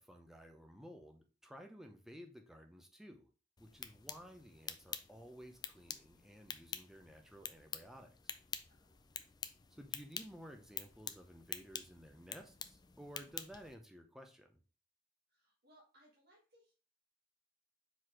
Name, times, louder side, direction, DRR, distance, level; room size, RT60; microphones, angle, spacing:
voice 1, 0.0-3.3 3.6-8.3 9.7-14.6, equal, ahead, 3 dB, 0.8 m, -55 dB
sound 1, 3.6-13.7, left 7 dB, 20° left, 0.3 m, -48 dB
voice 2, 8.7-9.1 15.3-16.7, equal, 50° right, -3 dB, 1.4 m, -68 dB
4.8 x 4.1 x 4.8 m, 0.35 s
head